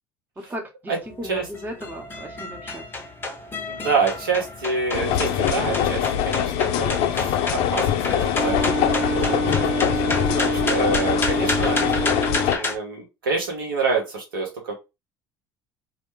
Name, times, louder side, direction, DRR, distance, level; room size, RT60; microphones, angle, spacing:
voice 1, 0.4-2.8 9.1-9.4, equal, 15° right, 2 dB, 0.8 m, -36 dB
sound 1, 1.0-12.8, left 2 dB, 20° left, 0.6 m, -31 dB
voice 2, 3.7-6.9 7.1-8.6 9.1-11.8 12.3-14.7, right 4 dB, 85° right, 0 dB, 1.1 m, -27 dB
sound 2, 4.9-12.6, left 9 dB, 60° left, 0.4 m, -23 dB
Wind instrument woodwind instrument, 8.3-12.6, right 3 dB, 70° right, 0.8 m, -27 dB
2.3 x 2.1 x 3.1 m, 0.25 s
hypercardioid pair, 70°, 11 cm